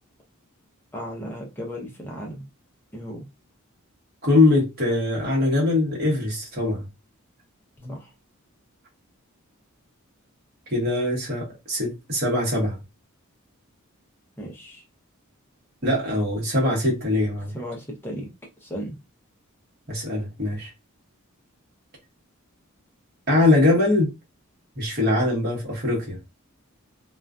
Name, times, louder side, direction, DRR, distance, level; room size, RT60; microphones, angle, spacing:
voice 1, 0.9-2.5 2.9-3.3 7.9-8.1 14.4-14.8 17.5-18.3 18.6-19.0, equal, 10° left, 0.6 m, -35 dB
voice 2, 4.2-6.9 7.8-7.9 10.7-12.8 15.8-17.5 19.9-20.7 23.3-24.1 24.8-26.2, left 2 dB, 45° right, 1.0 m, -22 dB
2.4 x 2.4 x 2.2 m
head